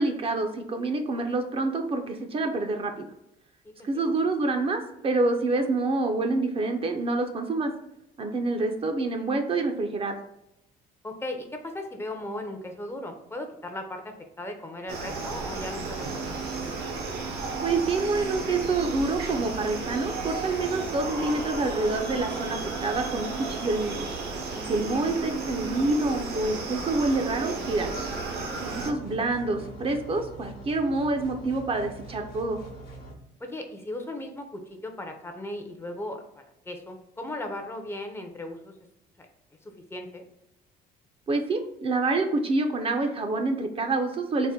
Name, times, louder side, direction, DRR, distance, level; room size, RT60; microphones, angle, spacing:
voice 1, 0.0-3.1 3.8-7.7 8.2-10.1 17.6-24.1 24.7-27.9 28.6-32.6 41.3-44.5, right 3 dB, 35° right, 5 dB, 0.5 m, -27 dB
voice 2, 3.6-4.1 11.0-16.5 24.5-25.0 33.4-38.7 39.9-40.2, left 1 dB, 15° left, 4 dB, 0.5 m, -37 dB
sound 1, 14.9-28.9, right 4 dB, 70° right, 0.8 m, -33 dB
sound 2, 28.7-33.1, right 2 dB, 65° left, 0.9 m, -44 dB
4.1 x 2.1 x 3.5 m, 0.84 s
cardioid pair, 110°, 17 cm